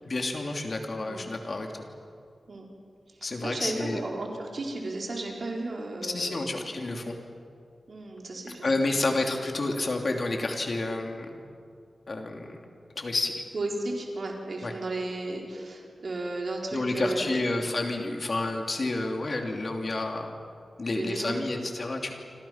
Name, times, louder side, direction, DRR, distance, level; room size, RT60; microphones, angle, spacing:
voice 1, 0.0-1.8 3.2-4.0 6.0-7.2 8.6-11.4 12.1-12.6 13.0-13.3 14.6-14.7 16.7-20.3 20.8-22.1, left 2 dB, 40° left, 2 dB, 3.0 m, -30 dB
voice 2, 3.1-6.6 7.9-9.2 13.5-17.4 20.9-21.6, right 2 dB, 50° right, 0 dB, 4.3 m, -34 dB
28.0 x 25.5 x 5.9 m, 2.3 s
wide cardioid pair, 160°, 0 cm